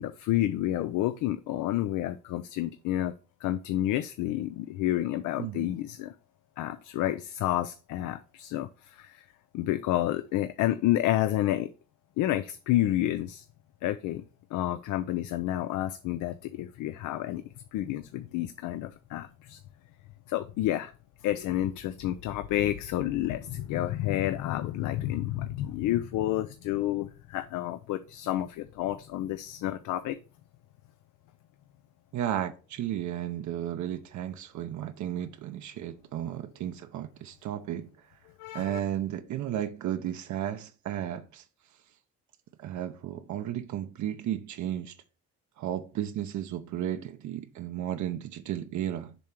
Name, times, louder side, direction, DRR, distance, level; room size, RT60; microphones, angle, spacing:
voice 1, 0.0-3.1 3.4-6.1 6.6-9.3 9.5-11.7 12.2-13.4 13.8-14.2 14.5-17.4 17.7-19.6 20.3-20.9 21.2-30.2 38.4-38.8, left 14 dB, 90° left, 0.5 m, -30 dB
voice 2, 5.4-5.7 32.1-37.9 38.5-41.4 42.6-45.0 45.6-49.2, right 11 dB, 70° right, 0.7 m, -34 dB
7.0 x 3.3 x 6.0 m
cardioid pair, 90°, 30 cm